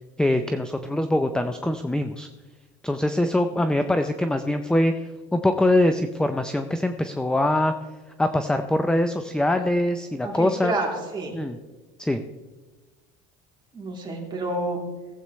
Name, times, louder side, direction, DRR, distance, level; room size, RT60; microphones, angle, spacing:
voice 1, 0.2-2.3 2.8-7.7 8.2-10.7 11.3-11.6 12.0-12.2, left 1 dB, 5° left, 8 dB, 0.6 m, -23 dB
voice 2, 10.2-11.4 13.7-14.8, right 2 dB, 25° right, -1 dB, 3.1 m, -29 dB
17.5 x 8.2 x 3.2 m, 1.2 s
supercardioid pair, 105°, 19 cm